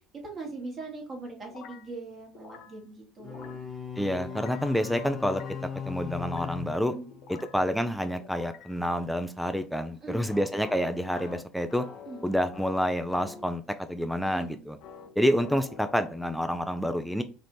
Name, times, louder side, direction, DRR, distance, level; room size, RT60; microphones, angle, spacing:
voice 1, 0.2-3.6 6.9-7.1 10.0-10.4 12.0-12.3 14.2-14.5, right 3 dB, 35° right, 0 dB, 1.3 m, -41 dB
sound 1, 1.5-1.9 2.4-2.8 3.2-3.7 4.2-4.7 5.2-5.7 6.2-6.6 7.1-7.7 8.2-8.8 10.3-13.5 14.8-16.7, left 5 dB, 55° left, 0.6 m, -48 dB
sound 2, 3.2-7.7, left 7 dB, 25° left, 1.0 m, -39 dB
voice 2, 4.0-5.4 5.9-6.9 7.3-11.8 12.2-13.6 13.9-14.8 15.2-17.2, equal, ahead, 8 dB, 0.3 m, -28 dB
3.3 x 2.5 x 2.9 m, 0.36 s
figure-of-eight pair, 65°, 0 cm